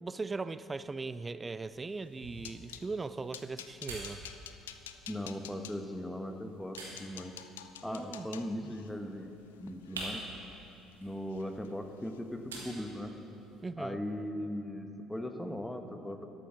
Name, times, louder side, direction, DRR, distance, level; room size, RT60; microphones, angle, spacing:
voice 1, 0.0-4.2 7.8-8.3 8.6-8.7 13.6-14.0, right 3 dB, 25° right, 15 dB, 0.4 m, -39 dB
sound 1, 1.6-13.6, right 2 dB, 90° right, 1.7 m, -49 dB
sound 2, 2.0-2.9 3.3-5.8 6.4-6.5 6.7-10.9 11.3-11.7 12.0-12.2 12.6-12.8, left 10 dB, 85° left, 0.4 m, -50 dB
voice 2, 5.1-7.3 7.8-9.3 9.6-10.2 11.0-13.1 13.8-16.3, left 1 dB, 5° left, 5 dB, 1.0 m, -38 dB
12.5 x 11.5 x 3.8 m, 3.0 s
hypercardioid pair, 55°, 0 cm